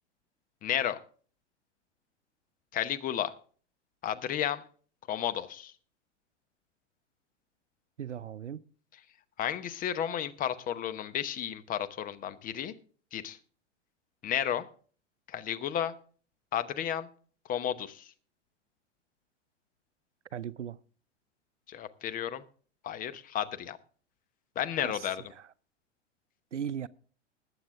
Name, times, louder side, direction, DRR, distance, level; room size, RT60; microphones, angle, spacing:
voice 1, 0.6-1.0 2.7-3.3 4.0-4.6 5.1-5.7 9.4-12.7 13.1-13.4 14.2-14.7 15.3-15.9 16.5-17.1 17.5-18.1 21.7-22.4 22.8-23.8 24.6-25.2, left 10 dB, 25° left, 0.9 m, -32 dB
voice 2, 8.0-8.6 20.3-20.8 24.8-25.5 26.5-26.9, right 8 dB, 80° right, 0.7 m, -38 dB
20.0 x 8.1 x 3.6 m
figure-of-eight pair, 100°, 36 cm